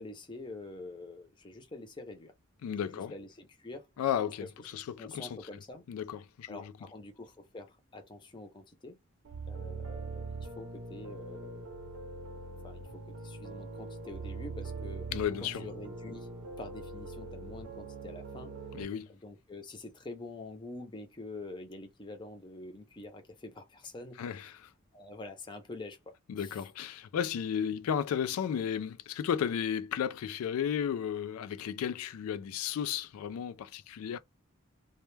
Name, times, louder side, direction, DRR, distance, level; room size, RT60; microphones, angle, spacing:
voice 1, 0.0-2.3 2.8-3.9 4.6-5.8 6.5-9.0 9.5-11.7 12.6-15.1 15.4-16.3 16.6-18.5 19.1-24.6 24.9-26.6, left 2 dB, 20° left, 0.5 m, -46 dB
voice 2, 2.6-3.1 4.0-4.5 4.7-5.4 5.9-6.7 15.1-15.6 18.7-19.1 24.2-24.5 26.3-34.2, left 8 dB, 85° left, 0.3 m, -33 dB
sound 1, 9.2-18.8, right 3 dB, 90° right, 0.6 m, -42 dB
2.1 x 2.1 x 3.1 m
head